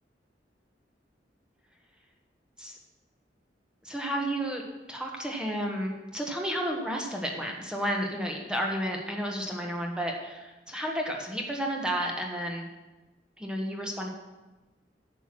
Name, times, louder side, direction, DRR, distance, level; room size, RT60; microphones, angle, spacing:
voice 1, 3.8-4.6 4.9-12.7 13.4-14.1, equal, 5° right, 0 dB, 1.4 m, -32 dB
10.5 x 8.2 x 6.1 m, 1.1 s
head